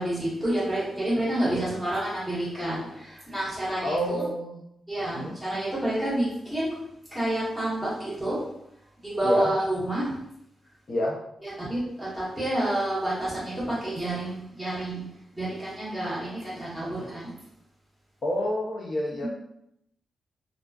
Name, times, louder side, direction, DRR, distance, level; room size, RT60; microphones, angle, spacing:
voice 1, 0.0-4.2 4.9-6.8 7.1-8.4 9.0-10.1 11.4-15.1 15.3-17.3 19.2-19.3, right 1 dB, 5° left, -9 dB, 1.1 m, -29 dB
voice 2, 3.8-4.6 5.0-5.4 9.2-9.5 10.9-11.2 18.2-19.3, equal, 40° left, -4 dB, 0.4 m, -29 dB
2.4 x 2.2 x 2.3 m, 0.76 s
wide cardioid pair, 155°, 0 cm